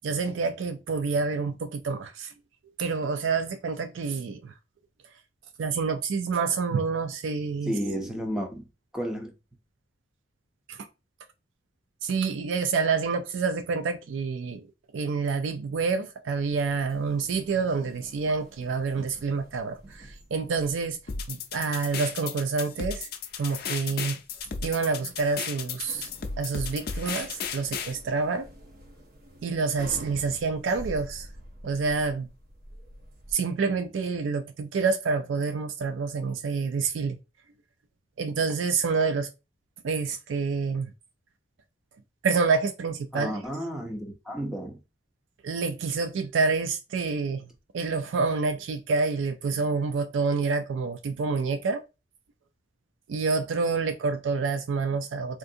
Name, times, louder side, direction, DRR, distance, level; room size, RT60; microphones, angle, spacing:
voice 1, 0.0-2.3 2.8-4.5 5.6-7.7 10.7-10.9 12.0-14.7 14.9-21.0 21.3-23.1 23.4-24.2 24.6-26.1 26.4-28.5 29.4-31.3 31.6-32.3 33.3-37.2 38.2-39.3 39.8-40.9 42.2-43.3 45.4-47.5 47.7-51.8 53.1-55.4, right 4 dB, 85° right, 0.4 m, -28 dB
voice 2, 7.7-8.6 8.9-9.3 43.1-44.8, equal, 5° right, 0.6 m, -32 dB
sound 1, 16.3-33.3, equal, 50° right, 0.7 m, -48 dB
sound 2, 21.1-27.9, left 6 dB, 55° left, 0.4 m, -34 dB
3.7 x 2.5 x 2.6 m
head